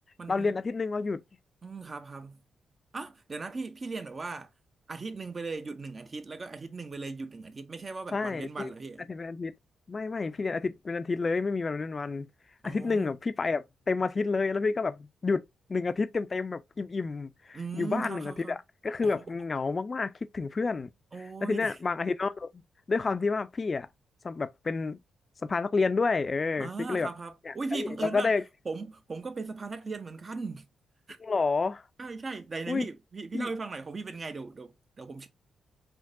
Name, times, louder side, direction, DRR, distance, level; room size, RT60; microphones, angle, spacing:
voice 1, 0.3-1.2 8.1-8.7 9.1-9.5 9.9-12.3 12.6-15.4 15.7-18.6 18.8-20.9 21.4-22.5 22.9-23.9 24.2-25.0 25.4-27.1 27.5-28.4 31.2-31.8 32.7-32.9 33.3-33.5, left 4 dB, 40° left, 0.4 m, -29 dB
voice 2, 1.6-2.4 2.9-4.5 4.9-9.1 12.6-13.2 17.5-18.6 19.0-19.3 21.1-21.8 26.6-28.4 28.7-30.7 31.1-31.2 32.0-35.3, right 3 dB, 40° right, 0.6 m, -38 dB
3.6 x 2.8 x 2.5 m
hypercardioid pair, 45°, 0 cm